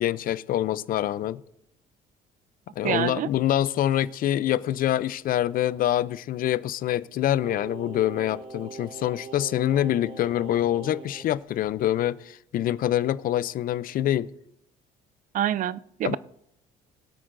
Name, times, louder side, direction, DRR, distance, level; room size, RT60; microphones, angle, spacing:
voice 1, 0.0-1.4 2.8-14.3 16.0-16.2, left 12 dB, 55° left, 0.5 m, -25 dB
voice 2, 2.8-3.3 15.3-16.2, right 11 dB, 50° right, 0.4 m, -26 dB
Singing, 7.4-11.3 11.6-11.7, right 4 dB, 30° right, 1.2 m, -42 dB
21.0 x 8.6 x 2.6 m
cardioid pair, 110°, 17 cm